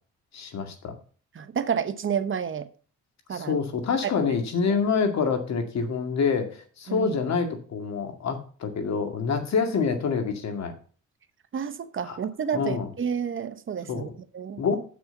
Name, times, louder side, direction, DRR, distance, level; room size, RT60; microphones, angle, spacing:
voice 1, 0.3-0.9 3.3-10.7 12.1-12.2 12.5-12.9 13.9-14.0 14.6-14.8, left 5 dB, 60° left, 2.2 m, -26 dB
voice 2, 1.3-2.7 3.3-3.6 4.0-4.1 4.7-4.8 6.9-7.1 11.5-14.6, right 7 dB, 40° right, 0.9 m, -30 dB
7.3 x 6.3 x 6.9 m
cardioid pair, 90°, 30 cm